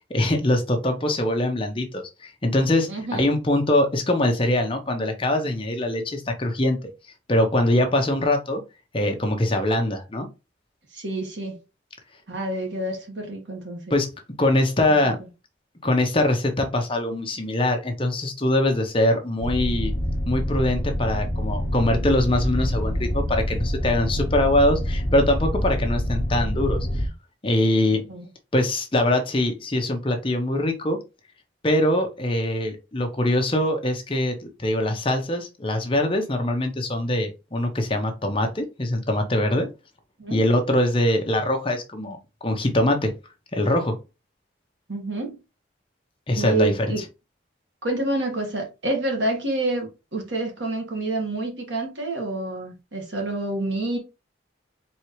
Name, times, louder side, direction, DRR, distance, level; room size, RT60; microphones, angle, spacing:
voice 1, 0.1-6.8 7.3-8.6 8.9-10.3 13.9-14.1 14.4-15.2 15.8-19.9 20.3-27.1 27.4-28.0 28.5-31.0 31.6-39.7 40.3-43.1 43.5-43.9 46.3-46.9, left 1 dB, 30° left, 0.8 m, -23 dB
voice 2, 2.9-3.3 10.9-11.6 12.3-13.8 15.0-15.1 28.1-28.2 40.2-40.4 44.9-45.4 46.4-47.0 47.8-54.0, right 2 dB, 70° right, 1.7 m, -28 dB
sound 1, 19.4-27.1, equal, 45° left, 1.2 m, -26 dB
4.5 x 3.3 x 3.1 m
head